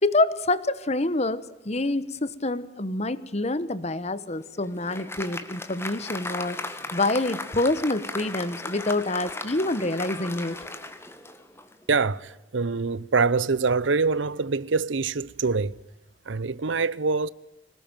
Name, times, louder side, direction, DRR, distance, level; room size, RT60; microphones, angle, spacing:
voice 1, 0.0-6.6 6.9-10.6, left 2 dB, 35° left, 1.2 m, -26 dB
Applause, 4.3-11.8, left 2 dB, 15° left, 1.9 m, -37 dB
voice 2, 11.9-15.8 16.3-17.3, right 4 dB, 80° right, 0.8 m, -25 dB
25.5 x 19.0 x 9.1 m
head